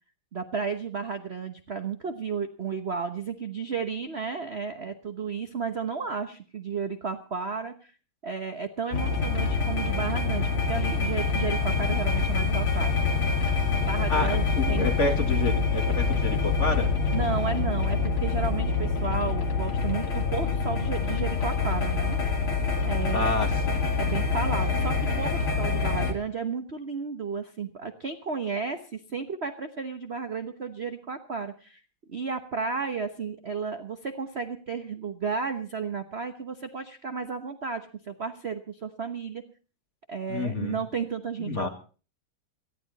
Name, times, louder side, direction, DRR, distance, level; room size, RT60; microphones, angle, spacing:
voice 1, 0.3-7.9 8.2-12.9 13.8-14.9 17.1-22.2 22.8-23.3 24.0-31.8 32.1-39.4 40.1-41.7, right 5 dB, 40° right, 7 dB, 1.0 m, -33 dB
sound 1, 8.9-26.1, left 4 dB, 70° left, 3.3 m, -26 dB
voice 2, 14.1-16.9 23.1-23.8 40.3-40.8 41.4-41.7, left 2 dB, 35° left, 5 dB, 2.4 m, -29 dB
19.0 x 14.5 x 4.1 m, 0.38 s
omnidirectional pair, 2.4 m